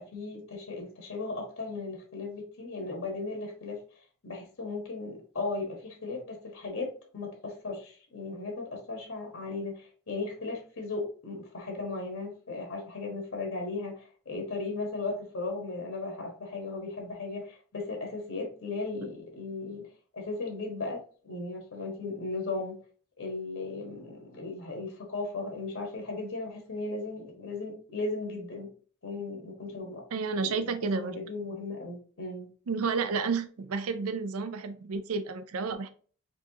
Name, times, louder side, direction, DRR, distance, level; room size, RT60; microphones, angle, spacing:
voice 1, 0.0-3.8 4.2-19.9 20.1-22.8 23.2-28.7 29.0-30.0 30.4-32.5, left 3 dB, 65° left, 2 dB, 1.2 m, -36 dB
voice 2, 30.1-31.2 32.7-35.9, right 4 dB, 75° right, 10 dB, 0.5 m, -31 dB
4.4 x 3.0 x 2.8 m, 0.42 s
head